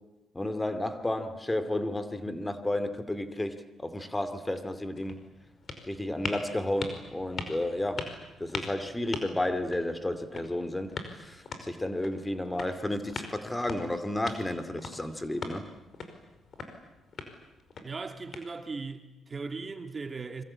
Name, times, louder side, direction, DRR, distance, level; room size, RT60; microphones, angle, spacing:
voice 1, 0.3-5.2 5.8-8.1 8.4-15.7, left 1 dB, 15° left, 2.5 m, -32 dB
sound 1, 4.5-18.9, left 4 dB, 50° left, 5.2 m, -42 dB
voice 2, 17.8-20.4, right 4 dB, 30° right, 2.4 m, -38 dB
26.5 x 24.0 x 8.8 m
cardioid pair, 90°, 0 cm